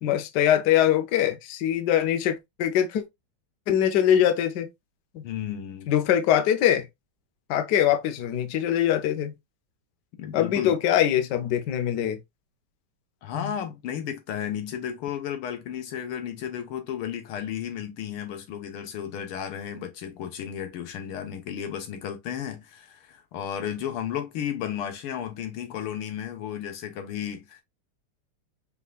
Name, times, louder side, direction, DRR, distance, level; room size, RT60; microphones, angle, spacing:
voice 1, 0.0-3.0 3.7-4.7 5.1-5.2 5.9-6.9 7.5-9.3 10.3-12.2 13.3-13.5, left 10 dB, 65° left, 1.2 m, -23 dB
voice 2, 5.2-5.9 10.2-10.8 13.2-27.6, left 9 dB, 80° left, 1.8 m, -33 dB
5.3 x 3.6 x 2.3 m
omnidirectional pair, 2.4 m